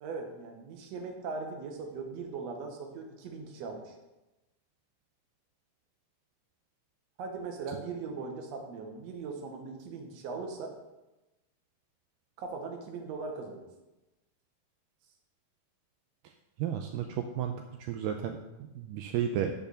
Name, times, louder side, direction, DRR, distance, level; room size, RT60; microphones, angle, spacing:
voice 1, 0.0-4.0 7.2-10.7 12.4-13.7, right 4 dB, 60° right, 3 dB, 1.9 m, -39 dB
voice 2, 16.6-18.4 18.7-19.5, right 9 dB, 85° right, 5 dB, 2.0 m, -33 dB
10.5 x 4.8 x 6.5 m, 1.0 s
omnidirectional pair, 4.4 m